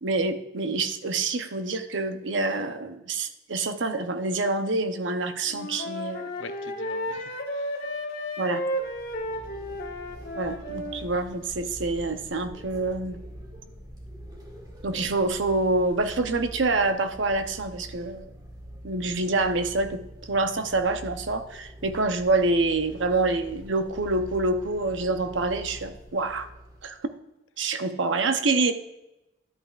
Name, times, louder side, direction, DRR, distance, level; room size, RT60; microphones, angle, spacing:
voice 1, 0.0-6.3 8.4-8.6 10.3-13.2 14.8-18.3 18.8-26.5 26.8-27.0 27.6-28.7, right 3 dB, 75° right, 8 dB, 0.8 m, -26 dB
Wind instrument woodwind instrument, 5.5-11.0, equal, 50° left, 1.4 m, -33 dB
voice 2, 6.4-8.4, left 4 dB, 85° left, 9 dB, 0.8 m, -46 dB
sound 1, 8.7-27.0, equal, 20° right, 1.7 m, -44 dB
11.0 x 8.7 x 2.4 m, 0.92 s
head